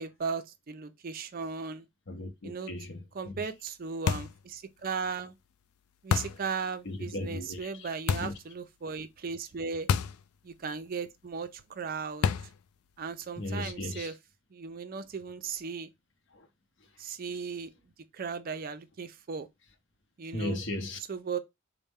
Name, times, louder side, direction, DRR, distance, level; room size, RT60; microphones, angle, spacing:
voice 1, 0.0-1.9 2.4-2.7 3.1-5.4 6.0-9.9 10.4-12.3 13.0-14.1 14.5-15.9 17.0-17.7 18.1-19.5 20.2-20.6 21.1-21.4, right 5 dB, 40° right, 0.4 m, -36 dB
voice 2, 2.1-3.5 6.8-7.9 8.2-8.3 13.4-14.1 16.3-16.5 20.3-21.0, left 2 dB, 55° left, 0.7 m, -37 dB
sound 1, 4.1-4.4 6.1-6.5 8.1-8.4 9.9-10.2 10.5-10.6 12.2-12.6, left 7 dB, 85° left, 0.4 m, -28 dB
4.2 x 2.1 x 3.5 m
head